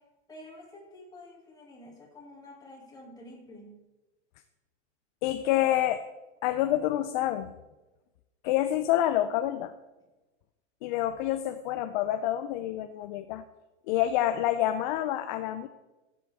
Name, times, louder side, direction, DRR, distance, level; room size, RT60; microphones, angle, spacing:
voice 1, 0.3-3.8, left 1 dB, 10° left, -3 dB, 2.5 m, -49 dB
voice 2, 5.2-6.0 6.4-7.5 8.4-9.7 10.8-13.4 13.9-15.7, left 13 dB, 40° left, 9 dB, 0.5 m, -27 dB
15.5 x 7.6 x 3.5 m, 1.1 s
supercardioid pair, 145°, 36 cm